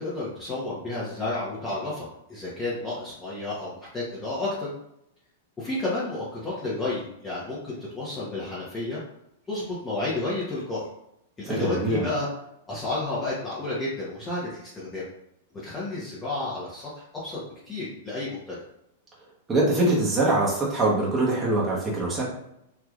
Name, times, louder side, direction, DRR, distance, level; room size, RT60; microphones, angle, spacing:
voice 1, 0.0-4.7 5.6-9.0 9.5-10.8 11.4-12.3 12.7-15.1 15.6-18.6, left 2 dB, 15° left, -8 dB, 1.0 m, -31 dB
voice 2, 11.4-12.1 19.5-22.2, right 2 dB, 20° right, -5 dB, 1.1 m, -23 dB
3.4 x 2.9 x 2.4 m, 0.80 s
hypercardioid pair, 110°, 0 cm